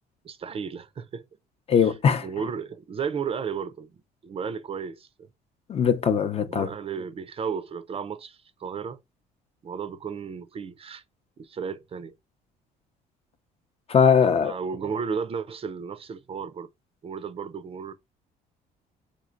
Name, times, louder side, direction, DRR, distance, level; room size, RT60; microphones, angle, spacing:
voice 1, 0.2-1.2 1.8-1.9 2.2-3.9 4.2-5.3 6.4-9.0 9.6-11.0 11.4-12.2 14.4-16.7 17.0-17.9, right 6 dB, 35° right, 0.5 m, -33 dB
voice 2, 1.7-2.3 5.7-6.7 13.9-14.6, left 7 dB, 35° left, 0.6 m, -20 dB
3.8 x 3.1 x 2.5 m
cardioid pair, 110°, 17 cm